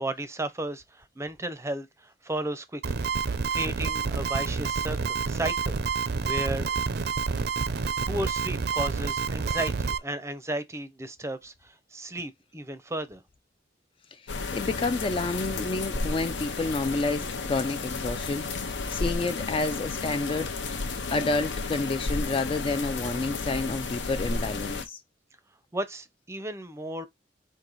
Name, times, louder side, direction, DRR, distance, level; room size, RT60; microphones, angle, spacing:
voice 1, 0.0-3.1 3.5-5.0 5.3-6.7 8.1-13.2 25.7-27.1, right 1 dB, 15° right, 0.6 m, -34 dB
sound 1, 2.8-10.0, right 5 dB, 60° right, 0.5 m, -28 dB
voice 2, 14.1-20.5 21.1-25.0, left 3 dB, 30° left, 0.3 m, -29 dB
sound 2, 14.3-24.8, left 3 dB, 80° left, 0.8 m, -32 dB
4.5 x 2.6 x 3.9 m
head